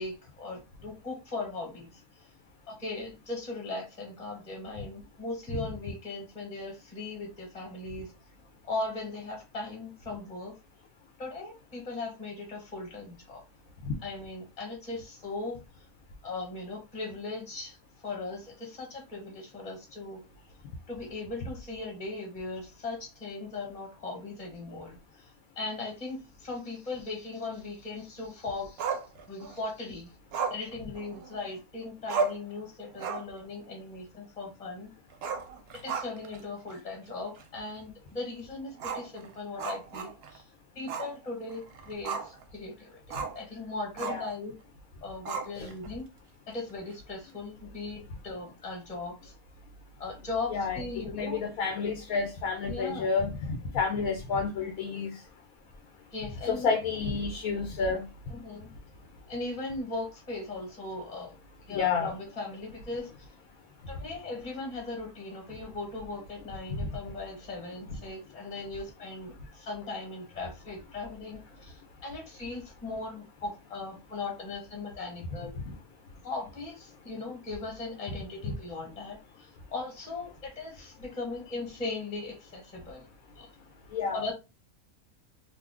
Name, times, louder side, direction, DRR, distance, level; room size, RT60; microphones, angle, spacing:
voice 1, 0.0-2.3 2.7-8.1 8.6-10.5 11.2-13.4 14.0-15.8 16.2-20.2 20.9-29.0 29.3-30.1 30.5-34.9 35.7-40.5 40.7-44.5 45.0-46.0 46.5-49.3 50.0-51.4 52.7-53.1 56.1-56.7 58.3-58.7 59.3-61.3 61.7-63.2 63.9-75.6 76.2-83.1 83.4-83.5 84.1-84.3, left 3 dB, 25° left, 1.1 m, -38 dB
Growling, 28.8-29.6 30.3-31.6 31.8-31.9 32.1-32.5 32.9-33.4 33.7-33.8 35.1-36.4 36.7-36.8 37.4-37.5 38.8-40.4 40.9-41.2 41.5-42.4 43.1-43.4 44.0-44.3 45.3-45.9, right 5 dB, 65° right, 0.7 m, -34 dB
voice 2, 50.5-53.3 53.7-55.1 56.5-58.0 61.7-62.1 78.4-78.5 83.9-84.2, left 5 dB, 85° left, 1.1 m, -30 dB
2.6 x 2.5 x 3.5 m
omnidirectional pair, 1.4 m